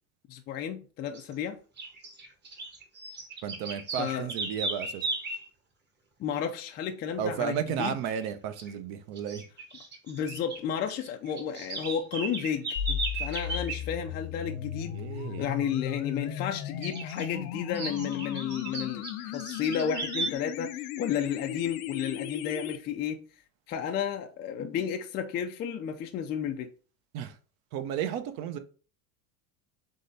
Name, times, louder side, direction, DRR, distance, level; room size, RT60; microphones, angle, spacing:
voice 1, 0.3-1.6 4.0-4.3 6.2-8.0 10.0-15.0 15.4-19.0 19.3-20.7 21.0-23.2 23.7-26.7, left 8 dB, 25° left, 0.3 m, -32 dB
sound 1, 1.1-1.3 1.8-5.5 8.0-8.3 8.6-8.7 9.2-10.6 10.9-13.8 16.8-17.3 17.7-20.3, right 3 dB, 25° right, 1.1 m, -36 dB
voice 2, 3.4-5.1 7.2-9.4 14.9-15.6 27.1-27.4 27.7-28.6, right 9 dB, 55° right, 0.8 m, -33 dB
sound 2, 12.8-22.8, left 10 dB, 90° left, 0.7 m, -36 dB
3.8 x 3.3 x 3.9 m
supercardioid pair, 130°, 43 cm